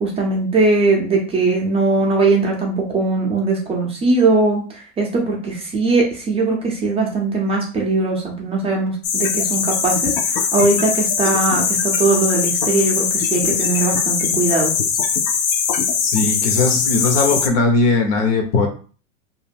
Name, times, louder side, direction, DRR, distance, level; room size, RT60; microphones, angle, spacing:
voice 1, 0.0-14.7, right 3 dB, 15° right, -1 dB, 0.4 m, -20 dB
sound 1, 9.0-17.5, left 6 dB, 45° left, 0.5 m, -21 dB
voice 2, 16.0-18.7, left 3 dB, 65° left, 3 dB, 0.9 m, -18 dB
2.4 x 2.0 x 3.3 m, 0.39 s
hypercardioid pair, 120°, 38 cm